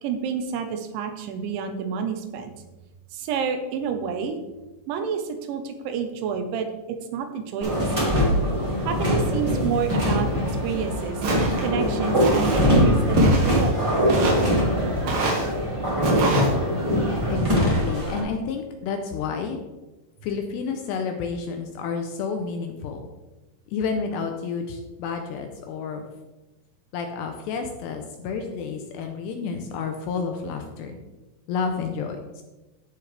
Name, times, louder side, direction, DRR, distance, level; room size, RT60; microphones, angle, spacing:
voice 1, 0.0-2.5 3.1-4.4 4.9-8.1 8.8-11.2 11.6-14.1, right 7 dB, 85° right, 7 dB, 3.3 m, -29 dB
sound 1, 7.6-18.2, equal, 10° right, 1.4 m, -22 dB
Walk footsteps, 11.2-11.7 12.2-12.6 13.2-13.7 14.1-14.5 15.1-15.5 16.0-16.5, right 2 dB, 65° right, 3.6 m, -25 dB
voice 2, 17.3-19.6 20.2-23.0 23.7-26.1 26.9-31.0 31.5-32.4, left 5 dB, 80° left, 5 dB, 2.7 m, -30 dB
13.5 x 6.7 x 3.4 m, 1.1 s
omnidirectional pair, 5.3 m